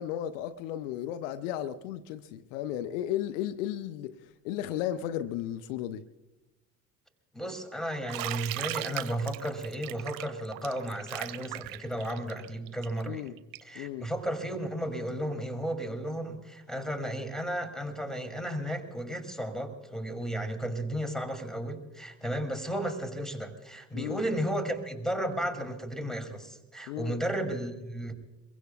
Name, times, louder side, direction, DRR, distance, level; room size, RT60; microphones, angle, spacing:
voice 1, 0.0-6.0 13.1-13.4 13.7-14.1 23.9-24.2 26.9-27.2, left 11 dB, 65° left, 0.8 m, -34 dB
voice 2, 7.3-13.3 13.6-28.1, right 1 dB, ahead, 2.8 m, -34 dB
Bathtub (filling or washing), 8.1-13.8, right 16 dB, 55° right, 0.9 m, -38 dB
25.0 x 22.5 x 2.4 m
figure-of-eight pair, 55°, 41 cm